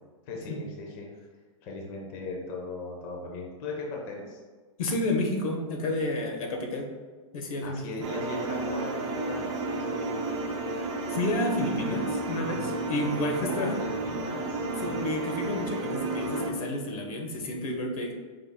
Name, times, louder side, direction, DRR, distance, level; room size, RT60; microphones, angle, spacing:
voice 1, 0.3-1.1 1.6-4.4 7.6-10.3 13.4-15.0, left 2 dB, 25° left, -1 dB, 0.6 m, -38 dB
voice 2, 4.8-6.9 7.3-7.8 11.1-13.8 14.8-18.1, left 1 dB, 85° left, 2 dB, 1.0 m, -30 dB
sound 1, 8.0-16.5, right 2 dB, 55° right, 0.7 m, -32 dB
5.0 x 3.8 x 2.2 m, 1.4 s
supercardioid pair, 170°, 18 cm